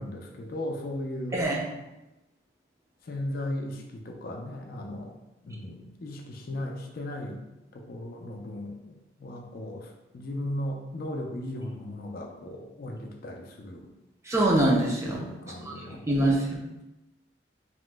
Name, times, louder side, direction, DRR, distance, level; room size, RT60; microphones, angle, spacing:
voice 1, 0.0-1.4 3.1-5.1 5.4-7.4 7.7-13.9 15.0-16.0, left 1 dB, 55° left, 1 dB, 0.4 m, -36 dB
voice 2, 14.3-15.2 15.7-15.8 16.1-16.8, right 1 dB, 15° right, -2 dB, 0.4 m, -24 dB
2.9 x 2.1 x 3.3 m, 0.96 s
head